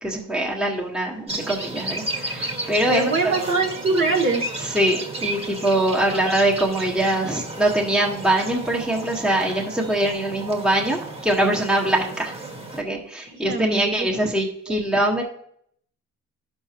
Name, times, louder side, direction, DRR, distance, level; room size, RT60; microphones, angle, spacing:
voice 1, 0.0-3.4 4.6-12.3 12.7-15.2, right 1 dB, ahead, -2 dB, 1.4 m, -23 dB
sound 1, 1.3-12.8, right 1 dB, 20° right, 1.6 m, -33 dB
voice 2, 2.9-4.5 6.1-6.3 13.2-14.1 14.7-14.9, right 3 dB, 40° right, 2 dB, 1.8 m, -24 dB
11.0 x 6.1 x 2.9 m, 0.66 s
cardioid pair, 90°, 30 cm